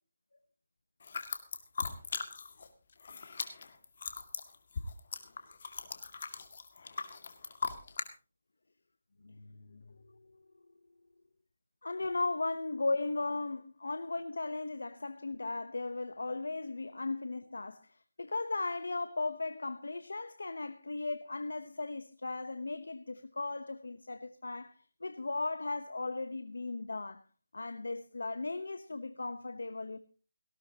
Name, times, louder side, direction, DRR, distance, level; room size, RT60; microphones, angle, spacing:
sound 1, 1.0-2.7 2.9-8.1, left 5 dB, 50° left, 2.1 m, -39 dB
voice 1, 9.2-10.2 11.8-27.2 27.5-30.0, left 3 dB, 90° left, 1.0 m, -37 dB
18.5 x 16.0 x 2.9 m
hypercardioid pair, 165°, 0 cm